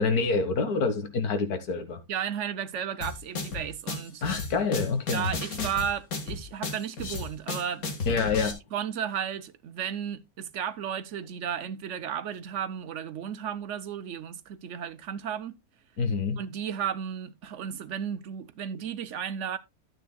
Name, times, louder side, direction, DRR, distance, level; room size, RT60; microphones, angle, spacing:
voice 1, 0.0-2.0 4.2-5.3 8.1-8.6 16.0-16.4, left 4 dB, 90° left, 1.9 m, -27 dB
voice 2, 2.1-4.7 5.1-7.8 8.7-15.6 16.4-19.6, right 8 dB, 60° right, 0.9 m, -34 dB
sound 1, 3.0-8.5, left 4 dB, 70° left, 2.3 m, -34 dB
12.0 x 9.0 x 2.2 m
omnidirectional pair, 1.6 m